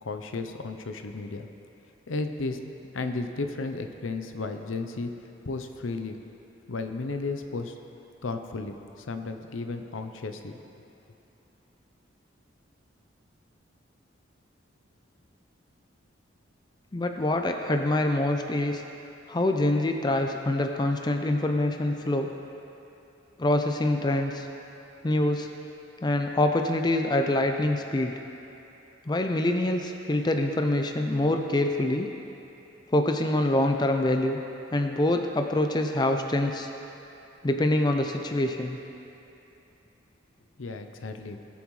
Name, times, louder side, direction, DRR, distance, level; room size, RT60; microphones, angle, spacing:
voice 1, 0.0-1.5 2.1-5.1 5.4-6.2 6.7-7.7 8.2-10.5 40.6-41.4, left 3 dB, 80° left, 7 dB, 0.7 m, -34 dB
voice 2, 16.9-18.8 19.3-22.3 23.4-24.5 25.0-25.5 26.0-28.1 29.1-32.1 32.9-34.4 34.7-36.7 37.4-38.8, left 1 dB, 20° left, 4 dB, 0.4 m, -25 dB
19.5 x 7.1 x 3.2 m, 2.9 s
head